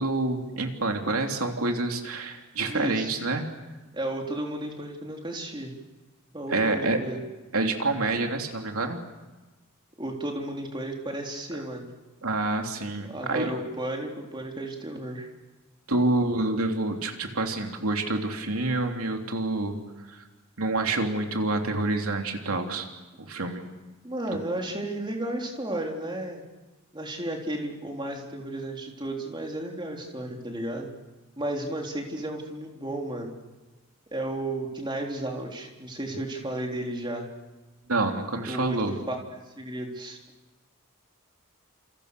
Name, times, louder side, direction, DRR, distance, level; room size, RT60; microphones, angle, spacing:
voice 1, 0.0-3.5 6.5-7.0 7.5-9.0 12.2-13.5 15.9-19.8 20.1-20.2 20.6-22.9 23.2-23.6 37.9-38.9, right 2 dB, 85° right, 4 dB, 3.1 m, -27 dB
voice 2, 2.7-3.3 3.9-5.7 6.3-7.2 10.0-11.9 13.0-15.3 24.0-26.4 26.9-30.9 31.4-33.3 34.1-37.3 38.4-40.2, right 1 dB, 20° right, 1 dB, 3.8 m, -33 dB
30.0 x 28.0 x 6.8 m, 1.2 s
head